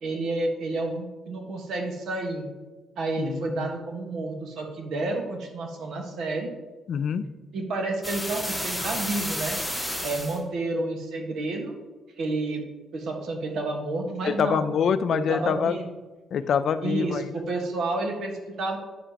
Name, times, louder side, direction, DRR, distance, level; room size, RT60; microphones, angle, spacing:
voice 1, 0.0-2.5 3.0-6.5 7.5-9.6 10.0-11.7 12.2-12.6 12.9-14.7 15.1-15.9 16.8-18.8, right 2 dB, 70° right, 2 dB, 1.5 m, -30 dB
voice 2, 3.2-3.7 6.9-7.2 14.3-15.7 16.3-17.2, left 7 dB, 60° left, 12 dB, 0.5 m, -25 dB
sound 1, 8.0-10.4, left 1 dB, 5° right, 2.1 m, -31 dB
9.8 x 7.0 x 3.0 m, 1.2 s
cardioid pair, 90°, 0 cm